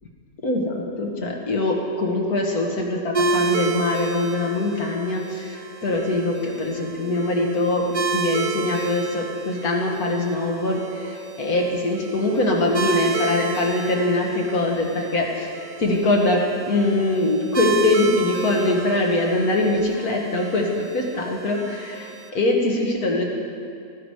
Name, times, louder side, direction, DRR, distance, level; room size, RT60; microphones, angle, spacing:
voice 1, 0.4-23.2, left 2 dB, 65° left, 0 dB, 2.0 m, -23 dB
sound 1, 3.1-22.3, right 4 dB, 40° right, 0.8 m, -30 dB
14.0 x 10.0 x 4.9 m, 2.3 s
omnidirectional pair, 1.8 m